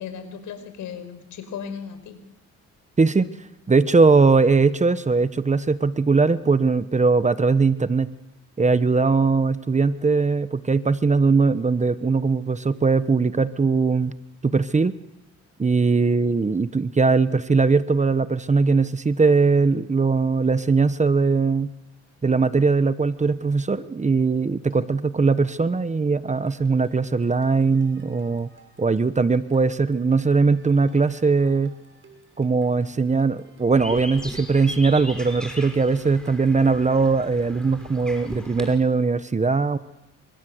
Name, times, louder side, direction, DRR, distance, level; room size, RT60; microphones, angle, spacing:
voice 1, 0.0-2.2 24.7-24.8, left 7 dB, 80° left, 9 dB, 5.5 m, -36 dB
voice 2, 3.7-8.1 8.6-14.1 14.4-14.9 15.6-21.7 22.2-28.5 28.8-31.7 32.4-39.8, right 4 dB, 25° right, 13 dB, 1.1 m, -20 dB
sound 1, 26.3-38.6, right 3 dB, 40° right, 6.7 m, -52 dB
sound 2, 33.7-38.8, left 1 dB, 5° left, 5.8 m, -38 dB
28.5 x 26.0 x 8.0 m, 0.97 s
cardioid pair, 90°, 30 cm